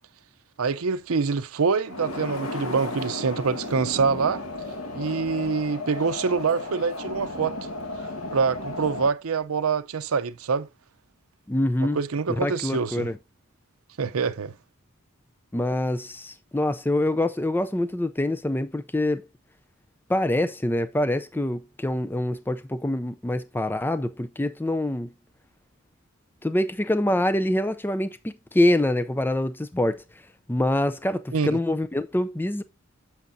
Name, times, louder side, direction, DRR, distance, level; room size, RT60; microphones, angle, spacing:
voice 1, 0.6-4.4 4.9-7.6 8.3-10.7 11.9-13.1 14.0-14.5 31.3-31.6, right 5 dB, 80° right, 0.6 m, -25 dB
sound 1, 1.8-9.1, left 2 dB, 80° left, 1.6 m, -34 dB
voice 2, 11.5-12.0 12.3-13.2 15.5-19.2 20.1-25.1 26.4-30.0 30.5-32.6, left 1 dB, 10° left, 0.4 m, -25 dB
9.4 x 7.2 x 2.6 m
head